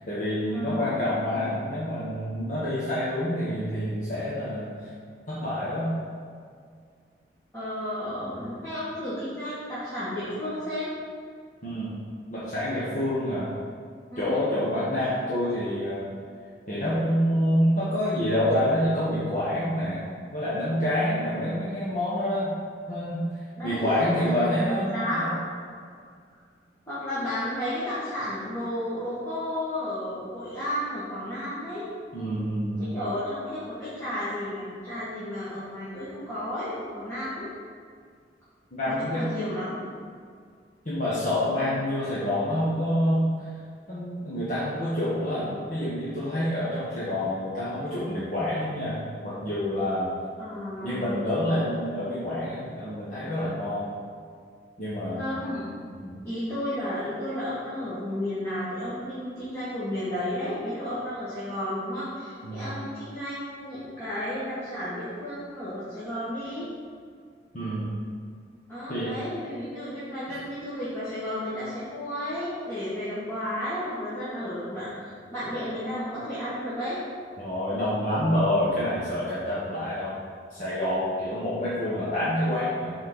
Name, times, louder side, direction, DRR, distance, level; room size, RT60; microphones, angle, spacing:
voice 1, 0.0-4.7 5.3-5.9 8.2-8.5 11.6-12.0 12.3-13.5 14.2-16.0 16.7-20.0 20.3-22.5 22.9-23.2 23.6-25.3 32.1-32.9 38.7-39.2 40.8-43.3 43.9-50.1 50.8-53.9 54.8-55.2 55.9-56.2 62.4-62.7 67.5-67.9 68.9-69.1 70.3-70.4 77.4-80.2 80.5-82.9, left 1 dB, 45° left, -10 dB, 1.4 m, -27 dB
voice 2, 0.5-0.9 7.5-10.9 12.5-12.9 14.1-14.4 23.6-25.4 26.9-31.9 32.8-37.5 38.9-39.8 50.4-51.0 55.2-55.7 56.2-66.7 68.7-77.1, left 1 dB, 15° left, -13 dB, 1.7 m, -33 dB
5.9 x 4.3 x 6.0 m, 2.1 s
head